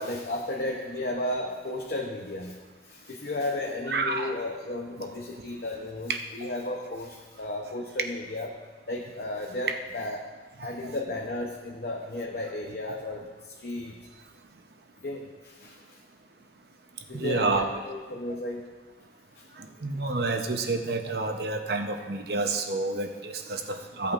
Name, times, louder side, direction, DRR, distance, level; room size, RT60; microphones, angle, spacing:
voice 1, 0.0-2.6 2.8-8.5 8.9-10.3 10.6-14.0 15.0-16.0 17.1-18.7 19.3-19.4, left 1 dB, 55° left, 0 dB, 0.8 m, -34 dB
voice 2, 3.9-4.3 9.7-9.8 10.6-10.9 12.9-13.0 17.1-17.7 19.8-24.1, right 3 dB, 60° right, 5 dB, 0.8 m, -29 dB
15.5 x 8.4 x 2.5 m, 1.4 s
head